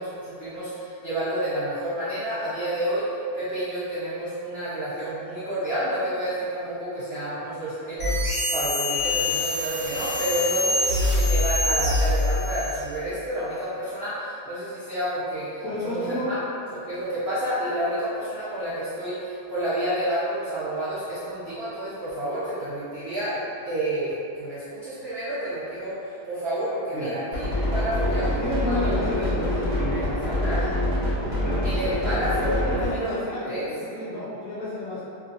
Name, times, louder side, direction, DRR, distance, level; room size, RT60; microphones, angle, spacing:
voice 1, 0.0-3.1 3.3-16.4 16.7-23.4 23.6-28.9 29.1-30.6 31.6-33.1 33.4-33.6, right 1 dB, 70° right, -11 dB, 0.5 m, -30 dB
sound 1, 8.0-12.9, left 1 dB, 30° left, 1.1 m, -24 dB
voice 2, 15.6-16.3 26.9-27.1 28.3-30.6 31.2-35.0, left 1 dB, 70° left, -9 dB, 0.8 m, -31 dB
sound 2, 27.3-32.9, left 1 dB, 40° right, 1.0 m, -25 dB
2.9 x 2.6 x 2.4 m, 2.6 s
omnidirectional pair, 1.9 m